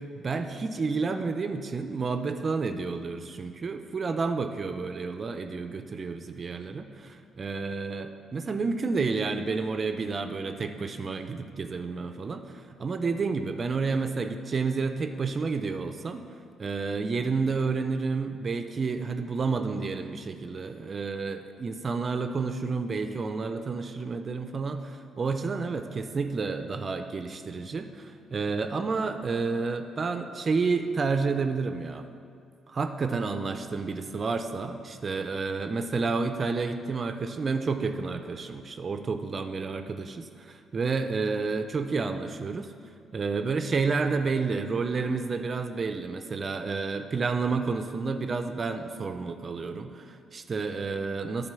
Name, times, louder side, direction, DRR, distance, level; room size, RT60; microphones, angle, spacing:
voice 1, 0.2-16.2 16.6-32.1 32.7-42.7 43.1-51.5, right 4 dB, 40° right, 8 dB, 0.4 m, -30 dB
8.9 x 4.0 x 6.8 m, 2.2 s
cardioid pair, 90°, 0 cm